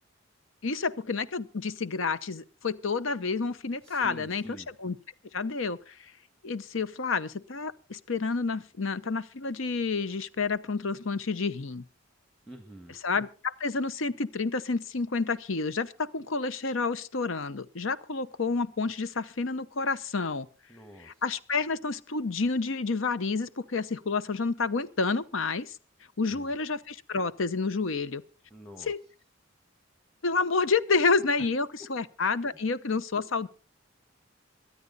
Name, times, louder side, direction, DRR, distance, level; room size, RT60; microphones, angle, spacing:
voice 1, 0.6-5.0 5.3-6.0 6.4-11.8 13.0-20.5 21.0-25.8 26.2-28.2 28.9-29.0 30.2-33.5, left 4 dB, 70° left, 0.8 m, -29 dB
voice 2, 3.8-4.7 12.4-13.0 20.7-21.2 26.3-26.5 28.5-28.9, right 1 dB, 5° left, 1.5 m, -47 dB
23.5 x 9.5 x 4.0 m
head